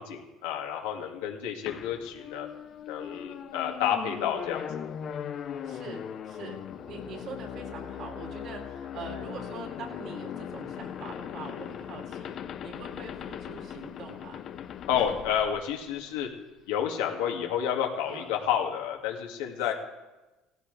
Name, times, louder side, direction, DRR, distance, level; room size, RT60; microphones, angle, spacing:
voice 1, 0.0-2.5 2.9-4.8 14.9-16.3 16.7-19.7, left 9 dB, 90° left, 1 dB, 2.3 m, -30 dB
sound 1, 1.7-16.2, left 9 dB, 45° left, 0.8 m, -39 dB
voice 2, 5.6-14.4 15.0-15.1 16.1-16.2 18.0-18.3, right 4 dB, 55° right, 0 dB, 3.0 m, -43 dB
17.0 x 15.0 x 3.4 m, 1.1 s
cardioid pair, 120°, 0 cm